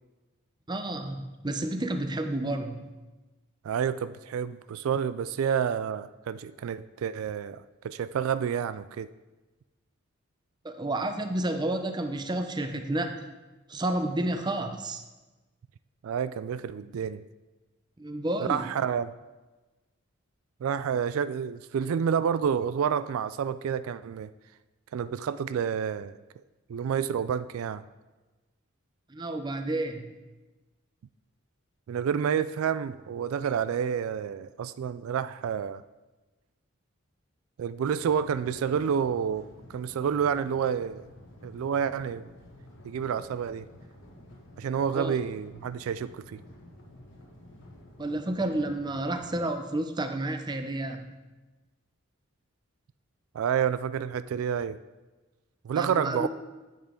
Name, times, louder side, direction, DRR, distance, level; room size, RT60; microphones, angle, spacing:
voice 1, 0.7-2.9 10.6-13.2 13.7-15.0 18.0-18.7 29.1-30.1 44.9-45.1 48.0-51.1 55.7-56.3, right 1 dB, 20° right, 7 dB, 0.6 m, -30 dB
voice 2, 3.6-9.1 16.0-17.2 18.5-19.1 20.6-24.3 24.9-26.1 26.7-27.8 31.9-35.8 37.6-41.1 41.4-42.3 42.8-43.7 44.6-46.4 53.3-54.8 55.6-56.3, right 7 dB, 80° right, 14 dB, 0.3 m, -29 dB
sound 1, 37.8-49.5, left 1 dB, 60° left, 1.6 m, -51 dB
10.5 x 8.1 x 3.7 m, 1.2 s
head